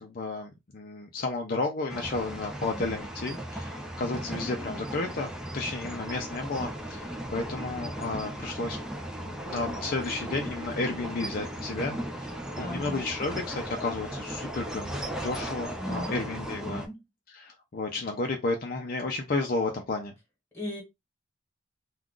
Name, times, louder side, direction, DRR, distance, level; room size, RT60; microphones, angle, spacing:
voice 1, 0.0-8.8 9.2-12.3 12.6-16.8 17.3-20.1, left 3 dB, 50° left, 0.5 m, -32 dB
sound 1, 1.9-16.9, right 1 dB, 5° right, 0.4 m, -36 dB
voice 2, 12.6-13.0 15.8-16.2 16.6-17.0 20.5-20.8, left 1 dB, 15° left, 1.4 m, -36 dB
2.4 x 2.3 x 3.6 m
head